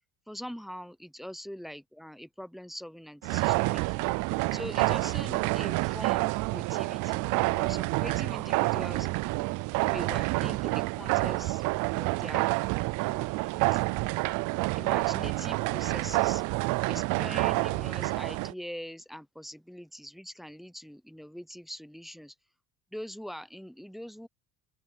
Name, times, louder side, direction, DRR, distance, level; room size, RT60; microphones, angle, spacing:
voice 1, 0.3-4.1 4.5-9.1 9.8-11.6 12.0-12.6 13.0-13.8 14.8-16.4 16.9-22.3 22.9-24.3, equal, ahead, 0.6 m, -42 dB
sound 1, 3.2-18.5, right 24 dB, 65° right, 0.5 m, -28 dB
open air
cardioid pair, 130°, 33 cm